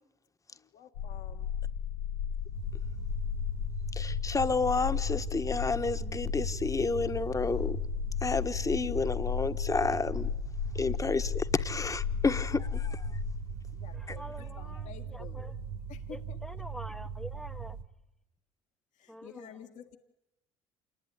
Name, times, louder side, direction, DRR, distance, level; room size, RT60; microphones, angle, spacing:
voice 1, 0.7-1.5 13.8-15.5 15.9-16.4 19.0-20.0, left 9 dB, 60° left, 1.7 m, -50 dB
sound 1, 1.0-13.5, left 8 dB, 80° left, 1.0 m, -35 dB
sound 2, 2.5-17.8, right 6 dB, 80° right, 1.6 m, -40 dB
voice 2, 4.0-7.8 8.2-10.3 10.7-13.0 14.1-14.2, left 4 dB, 25° left, 1.4 m, -30 dB
voice 3, 14.2-14.8 15.1-15.5 16.1-17.7 19.1-19.5, equal, ahead, 1.1 m, -45 dB
27.5 x 20.5 x 9.9 m
hypercardioid pair, 70°, 14 cm